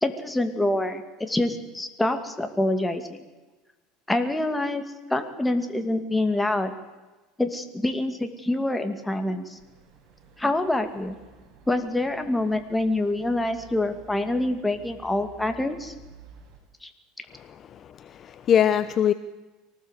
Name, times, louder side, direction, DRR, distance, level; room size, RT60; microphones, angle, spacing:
voice 1, 0.0-3.2 4.1-4.8 5.1-6.7 7.4-9.6 10.4-11.2 11.7-15.9 16.8-16.9, left 1 dB, 5° left, 7 dB, 2.4 m, -26 dB
sound 1, 9.6-16.6, right 4 dB, 50° right, 7.8 m, -52 dB
voice 2, 17.3-19.1, left 9 dB, 35° left, 13 dB, 0.8 m, -23 dB
24.0 x 19.0 x 8.3 m, 1.2 s
supercardioid pair, 130°, 0 cm